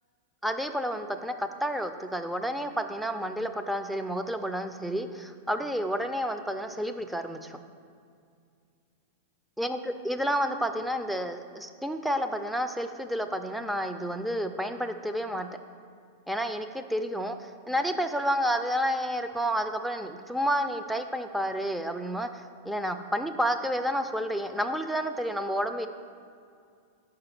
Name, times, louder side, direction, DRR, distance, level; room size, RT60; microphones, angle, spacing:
voice 1, 0.4-7.6 9.6-15.5 16.3-25.9, equal, ahead, 7 dB, 0.4 m, -30 dB
4.8 x 4.8 x 5.9 m, 2.3 s
hypercardioid pair, 110°, 0 cm